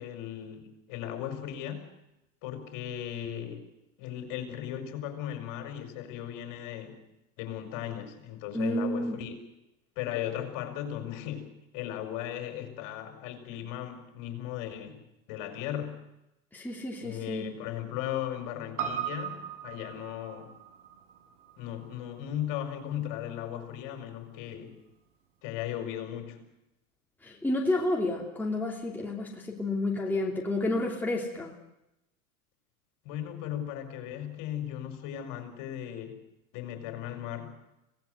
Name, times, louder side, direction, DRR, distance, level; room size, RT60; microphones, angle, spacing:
voice 1, 0.0-1.9 2.4-3.7 4.0-7.0 7.4-9.4 10.0-15.0 15.3-16.0 17.0-20.6 21.6-24.8 25.4-26.4 33.1-36.2 36.5-37.6, left 11 dB, 45° left, 7 dB, 5.3 m, -37 dB
voice 2, 8.5-9.2 16.5-17.5 27.2-31.6, left 1 dB, 5° left, -1 dB, 2.8 m, -30 dB
Piano, 18.8-23.3 23.6-23.7, right 9 dB, 55° right, 5.7 m, -39 dB
25.5 x 18.0 x 7.9 m, 0.90 s
hypercardioid pair, 110°, 43 cm